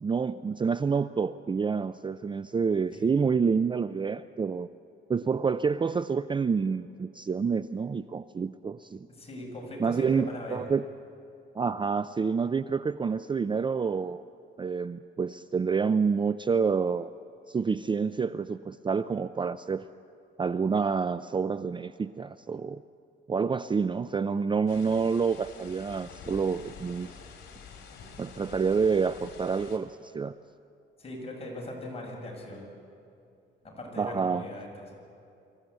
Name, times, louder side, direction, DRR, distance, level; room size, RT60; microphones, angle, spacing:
voice 1, 0.0-4.7 5.1-9.0 9.8-10.9 11.6-14.2 14.6-17.1 17.5-19.8 20.4-22.8 23.3-27.1 28.2-30.3 34.0-34.4, right 5 dB, 25° right, 13 dB, 0.5 m, -28 dB
voice 2, 9.2-10.6 31.0-32.7 33.6-34.9, left 1 dB, 30° left, -1 dB, 7.1 m, -40 dB
sound 1, 24.7-29.8, left 5 dB, 65° left, 3.7 m, -48 dB
25.0 x 15.0 x 8.3 m, 2.6 s
cardioid pair, 90°, 20 cm